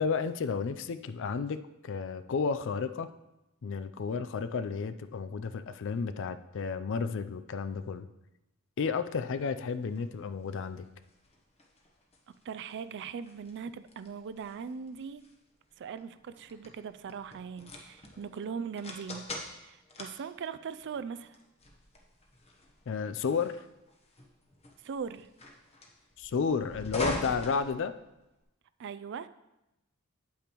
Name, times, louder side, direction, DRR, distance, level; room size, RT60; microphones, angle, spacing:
voice 1, 0.0-3.1 3.6-8.1 8.8-10.8 22.9-23.6 26.2-27.9, left 5 dB, 55° left, 11 dB, 0.4 m, -32 dB
sound 1, 9.0-28.4, left 1 dB, 30° left, 1.0 m, -44 dB
voice 2, 12.5-15.2 15.8-19.2 19.6-21.4 24.8-25.3 28.8-29.3, right 6 dB, 55° right, 13 dB, 0.3 m, -40 dB
8.5 x 8.5 x 3.0 m, 0.92 s
head